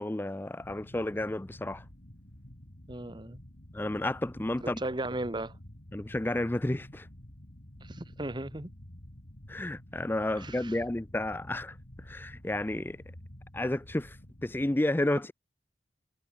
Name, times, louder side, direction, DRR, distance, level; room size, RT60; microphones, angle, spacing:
voice 1, 0.0-1.8 3.7-4.8 5.9-7.1 9.5-11.7 12.1-13.0 13.5-14.2 14.4-15.3, left 1 dB, 10° left, 0.4 m, -31 dB
sound 1, 0.6-14.8, left 1 dB, 50° left, 2.8 m, -50 dB
voice 2, 2.9-3.4 4.6-5.5 7.8-8.7 10.4-10.8, right 1 dB, 25° right, 1.1 m, -36 dB
head